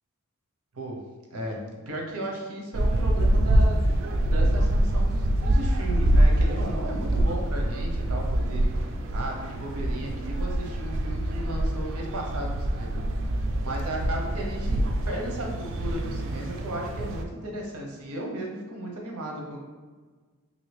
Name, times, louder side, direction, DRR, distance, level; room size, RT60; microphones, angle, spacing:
voice 1, 1.9-13.3 13.6-19.6, right 1 dB, 80° right, 0 dB, 0.7 m, -35 dB
sound 1, 2.7-17.2, right 1 dB, 60° right, 0.3 m, -25 dB
3.1 x 2.6 x 3.2 m, 1.4 s
head